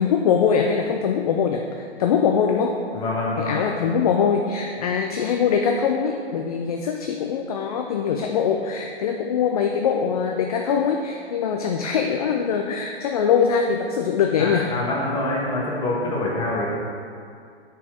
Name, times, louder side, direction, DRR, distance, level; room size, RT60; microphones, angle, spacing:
voice 1, 0.0-2.8 3.5-14.7, left 6 dB, 35° left, 3 dB, 0.5 m, -22 dB
voice 2, 2.9-3.6 14.4-16.7, left 2 dB, 15° left, -4 dB, 1.4 m, -25 dB
7.6 x 4.6 x 6.2 m, 2.3 s
figure-of-eight pair, 130°, 34 cm